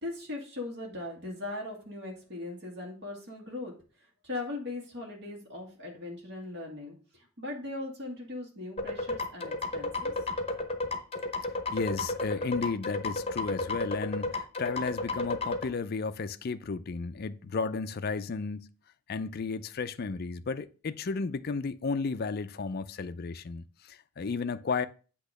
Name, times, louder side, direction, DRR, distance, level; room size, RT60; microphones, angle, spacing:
voice 1, 0.0-3.7 4.0-10.1, left 2 dB, 50° right, 2.2 m, -39 dB
sound 1, 8.8-15.6, left 2 dB, 25° left, 0.8 m, -32 dB
voice 2, 11.7-18.7 19.1-24.9, left 4 dB, 45° left, 0.4 m, -33 dB
8.3 x 3.0 x 6.4 m
head